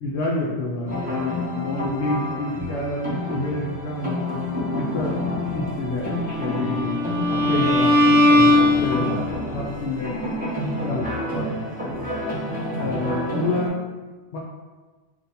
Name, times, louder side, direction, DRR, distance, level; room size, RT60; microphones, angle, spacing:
voice 1, 0.0-4.2 4.7-5.2 5.5-6.1 6.4-7.0 7.4-9.3 9.5-10.1 10.8-11.5 12.7-13.8 14.3-14.4, left 2 dB, 65° left, -4 dB, 1.0 m, -28 dB
sound 1, 0.9-13.7, left 1 dB, 10° right, 0.9 m, -29 dB
Bowed string instrument, 6.3-9.5, left 1 dB, 15° left, 1.5 m, -19 dB
6.3 x 2.2 x 2.7 m, 1.3 s
omnidirectional pair, 1.3 m